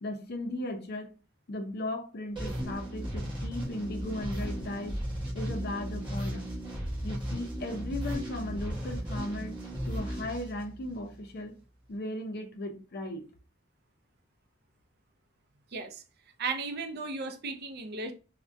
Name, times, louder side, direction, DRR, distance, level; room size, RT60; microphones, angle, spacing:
voice 1, 0.0-1.1 1.5-5.0 5.3-6.5 7.0-9.6 9.9-11.5 11.9-13.3, left 1 dB, 50° left, 0.5 m, -36 dB
sound 1, 2.3-11.2, equal, 25° right, 1.1 m, -36 dB
voice 2, 15.7-16.0 16.4-18.1, right 4 dB, 50° right, 0.5 m, -35 dB
3.4 x 2.2 x 2.5 m
head